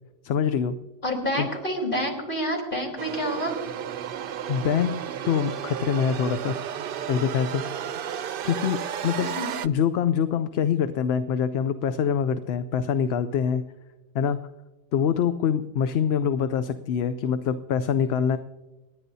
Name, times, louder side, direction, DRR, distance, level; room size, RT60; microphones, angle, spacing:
voice 1, 0.2-0.8 1.4-1.5 4.5-6.6 7.1-7.6 8.4-9.3 9.6-13.6 14.1-14.4 14.9-18.4, left 7 dB, 75° left, 11 dB, 0.8 m, -25 dB
voice 2, 1.0-3.6 9.2-9.5, equal, 55° left, 1 dB, 3.8 m, -28 dB
sound 1, 3.0-9.7, right 9 dB, 65° right, 0.7 m, -33 dB
29.0 x 10.0 x 2.7 m, 1.1 s
omnidirectional pair, 1.1 m